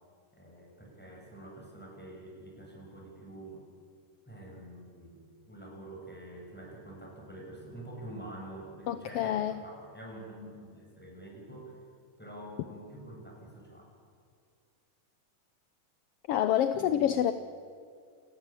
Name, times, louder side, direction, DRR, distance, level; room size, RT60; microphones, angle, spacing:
voice 1, 0.3-3.6 4.3-11.8 12.2-13.9 16.7-17.3, right 1 dB, 5° left, -1 dB, 7.1 m, -47 dB
voice 2, 8.9-9.5 16.3-17.3, left 11 dB, 70° left, 11 dB, 1.5 m, -27 dB
28.5 x 17.5 x 8.9 m, 2.2 s
omnidirectional pair, 3.5 m